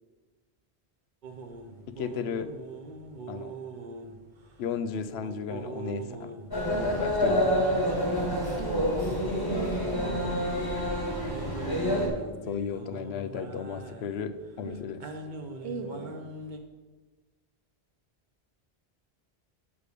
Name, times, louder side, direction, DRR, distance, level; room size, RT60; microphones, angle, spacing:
sound 1, 1.2-16.6, right 3 dB, 50° right, 0.9 m, -43 dB
voice 1, 2.0-2.5 3.3-3.5 4.6-6.3 6.8-7.5 7.9-8.0 12.5-15.0, left 7 dB, 75° left, 10 dB, 0.8 m, -34 dB
sound 2, 6.5-12.1, equal, 20° left, 1.6 m, -27 dB
voice 2, 6.7-7.0 8.5-9.2 9.5-10.5 14.6-14.8 15.6-16.2, right 4 dB, 90° right, 4 dB, 1.3 m, -39 dB
6.6 x 5.0 x 6.6 m, 1.2 s
omnidirectional pair, 1.1 m